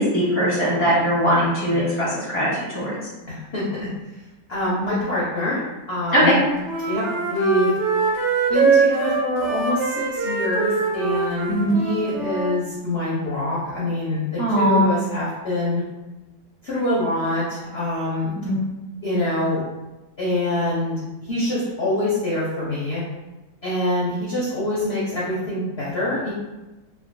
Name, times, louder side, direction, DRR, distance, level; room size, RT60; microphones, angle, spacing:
voice 1, 0.0-3.0 6.1-6.4 11.5-11.8 14.4-14.9 18.3-18.6, equal, 10° right, -9 dB, 0.6 m, -20 dB
voice 2, 3.3-3.9 4.5-5.6 5.9-6.4 6.9-7.7 8.5-15.8 16.6-18.3 19.0-19.6 20.2-23.0 23.6-26.3, left 1 dB, 60° left, -8 dB, 0.6 m, -25 dB
Wind instrument woodwind instrument, 6.2-12.6, right 5 dB, 80° right, 1.3 m, -23 dB
3.5 x 2.1 x 2.5 m, 1.0 s
omnidirectional pair, 2.1 m